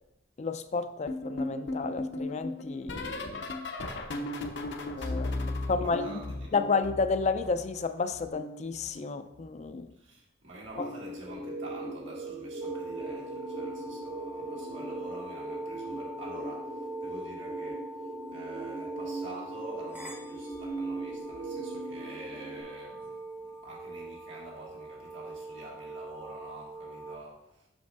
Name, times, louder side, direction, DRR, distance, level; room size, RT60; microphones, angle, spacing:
voice 1, 0.4-3.5 4.9-6.1 6.5-9.9 10.8-10.9, left 4 dB, 35° left, 0.4 m, -31 dB
sound 1, 1.1-7.8 8.1-9.7 10.7-11.1 11.3-11.7 13.2-13.5 13.8-14.1 15.6-15.7, left 2 dB, 65° left, 0.7 m, -37 dB
voice 2, 5.0-6.7 9.9-17.9 18.3-27.7, right 1 dB, 80° right, 2.0 m, -47 dB
sound 2, 10.7-22.6, right 2 dB, 55° right, 1.2 m, -40 dB
sound 3, 12.6-27.2, right 2 dB, 10° right, 0.7 m, -42 dB
6.1 x 5.3 x 3.5 m
head